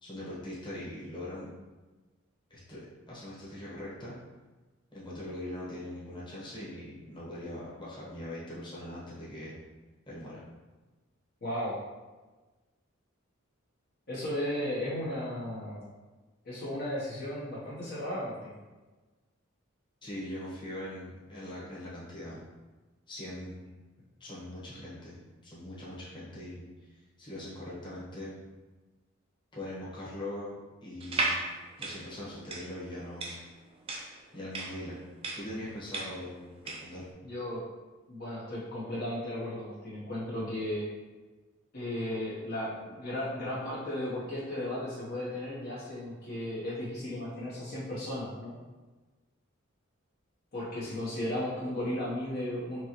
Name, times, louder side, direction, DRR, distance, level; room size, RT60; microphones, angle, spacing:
voice 1, 0.0-1.5 2.5-4.1 4.9-9.5 10.1-10.4 20.0-22.4 23.1-23.6 24.2-26.6 27.2-28.4 29.5-30.5 30.8-31.4 31.8-33.3 34.3-35.0 35.3-36.6 36.8-37.0, left 1 dB, 25° left, -8 dB, 1.2 m, -41 dB
voice 2, 11.4-11.8 14.1-15.8 16.4-18.5 37.2-37.6 38.1-40.9 41.7-48.6 50.5-52.8, left 1 dB, 50° left, -7 dB, 0.9 m, -35 dB
sound 1, 31.0-37.0, right 3 dB, 25° right, 0.4 m, -35 dB
4.5 x 3.0 x 2.9 m, 1.2 s
head